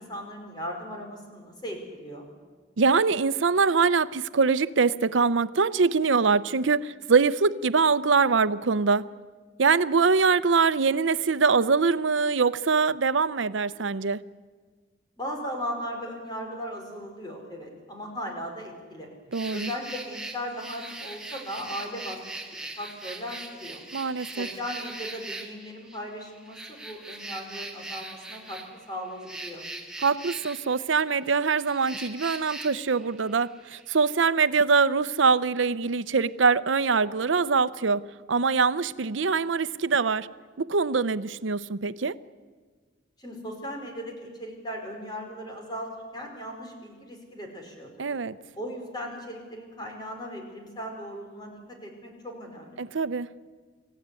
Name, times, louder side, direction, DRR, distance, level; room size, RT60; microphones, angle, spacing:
voice 1, 0.0-2.3 15.2-19.1 19.5-22.2 22.8-23.8 24.4-28.6 28.9-29.6 43.2-48.2 48.5-52.8, equal, 20° left, 4.6 m, -37 dB
voice 2, 2.8-9.1 9.6-14.2 19.3-19.7 23.9-24.5 30.0-38.0 38.3-40.3 40.6-42.2 48.0-48.3 52.8-53.3, right 5 dB, 85° right, 0.7 m, -23 dB
sound 1, 19.3-34.1, right 2 dB, 5° right, 1.9 m, -41 dB
26.0 x 15.0 x 9.7 m
head